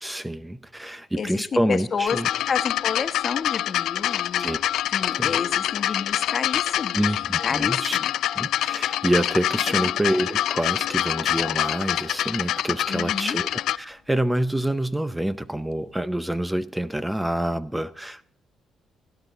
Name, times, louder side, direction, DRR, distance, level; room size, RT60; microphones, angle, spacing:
voice 1, 0.0-2.3 4.4-4.6 5.1-5.4 6.9-8.0 8.4-18.3, right 1 dB, 10° right, 0.5 m, -27 dB
voice 2, 1.2-2.2 2.4-4.5 4.9-8.1 9.7-9.9 12.9-13.4, left 6 dB, 45° left, 1.2 m, -30 dB
sound 1, 2.1-13.8 14.7-14.8, left 12 dB, 80° left, 0.4 m, -26 dB
18.0 x 10.0 x 4.0 m
cardioid pair, 90°, 0 cm